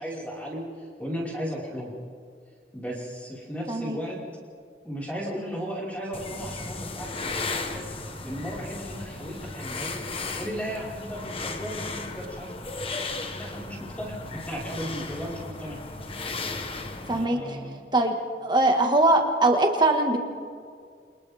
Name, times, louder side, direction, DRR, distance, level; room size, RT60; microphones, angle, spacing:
voice 1, 0.0-1.9 2.7-4.2 4.8-7.8 8.2-10.0 10.4-12.5 13.2-15.8 17.1-17.8, equal, 10° left, -5 dB, 5.1 m, -35 dB
sound 1, 6.1-17.3, left 3 dB, 30° left, 1.3 m, -35 dB
voice 2, 18.4-20.2, right 2 dB, 25° right, 3 dB, 1.9 m, -21 dB
29.5 x 26.5 x 3.6 m, 2.1 s
head